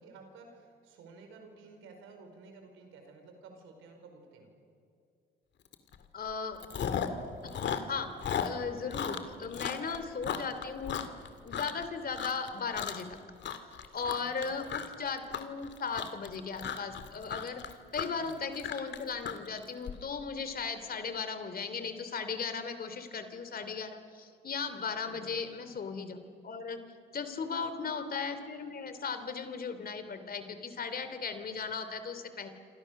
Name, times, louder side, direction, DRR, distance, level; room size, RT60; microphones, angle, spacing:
voice 1, 0.0-4.5 14.2-14.6 18.2-18.4 25.0-25.5 27.3-27.7, right 4 dB, 90° right, 4 dB, 4.9 m, -53 dB
Chewing mastication, 5.7-6.0 6.3-7.2 7.5-11.8 12.1-12.5 12.8-13.1 13.4-19.9, left 8 dB, 65° left, 2.1 m, -36 dB
voice 2, 6.1-6.6 7.4-7.6 7.9-8.1 8.4-11.0 11.4-13.2 13.9-17.6 17.9-26.8 27.1-32.5, left 5 dB, 50° left, 9 dB, 3.0 m, -37 dB
27.5 x 26.5 x 6.6 m, 2.5 s
cardioid pair, 90°, 20 cm